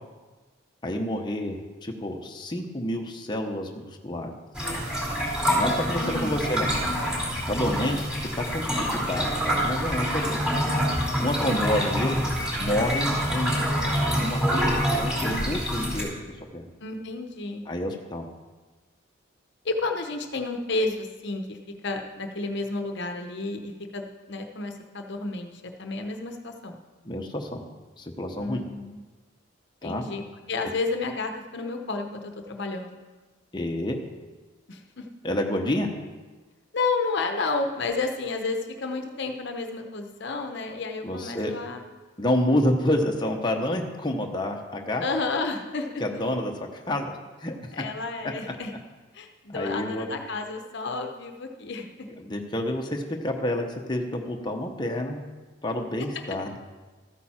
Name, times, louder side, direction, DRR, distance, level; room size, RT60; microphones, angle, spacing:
voice 1, 0.8-4.3 5.5-6.7 7.5-8.0 8.4-10.4 11.2-12.3 12.6-13.6 14.2-16.1 16.5-16.6 17.7-18.3 27.0-27.6 28.0-28.6 29.8-30.0 33.5-34.0 35.2-35.9 41.0-41.5 42.2-45.0 46.0-46.5 46.9-47.5 48.2-48.3 49.5-50.1 52.2-55.2 55.6-56.6, left 1 dB, 20° left, 2 dB, 1.0 m, -28 dB
sound 1, 4.5-16.0, equal, 5° right, 4.4 m, -26 dB
voice 2, 6.0-6.4 16.8-17.6 19.6-21.6 21.8-26.8 28.4-29.0 29.8-33.0 34.7-35.0 36.7-41.9 45.0-46.0 47.7-48.7 49.1-52.1, left 3 dB, 60° left, 5 dB, 0.9 m, -31 dB
14.0 x 9.2 x 4.3 m, 1.3 s
head